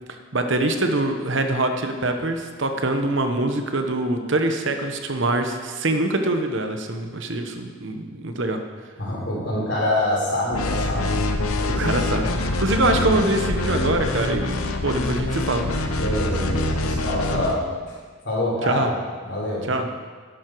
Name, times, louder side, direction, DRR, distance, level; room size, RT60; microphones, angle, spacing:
voice 1, 0.3-8.6 11.7-12.3 12.6-15.6 18.6-18.9 19.7-19.9, right 2 dB, 60° right, 6 dB, 1.0 m, -24 dB
voice 2, 9.0-11.2 11.5-11.9 16.0-17.6 18.2-18.9 19.2-19.7, left 1 dB, 55° left, -4 dB, 4.0 m, -25 dB
sound 1, 10.5-17.6, left 2 dB, 85° left, 1.0 m, -25 dB
12.5 x 11.0 x 4.7 m, 1.5 s
head